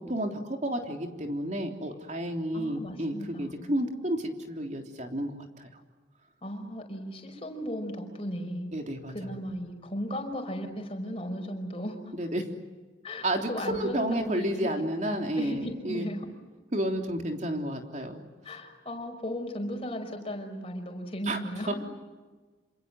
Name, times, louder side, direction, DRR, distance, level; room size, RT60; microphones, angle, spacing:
voice 1, 0.1-5.7 8.7-9.3 12.2-12.5 13.2-16.1 16.7-18.2 21.3-21.4 21.7-21.8, right 1 dB, 40° right, 3 dB, 3.4 m, -31 dB
voice 2, 2.5-3.7 6.4-8.7 9.1-12.0 13.0-14.7 15.4-16.3 18.4-21.7, equal, 30° left, 3 dB, 5.3 m, -36 dB
27.5 x 27.0 x 7.9 m, 1.3 s
head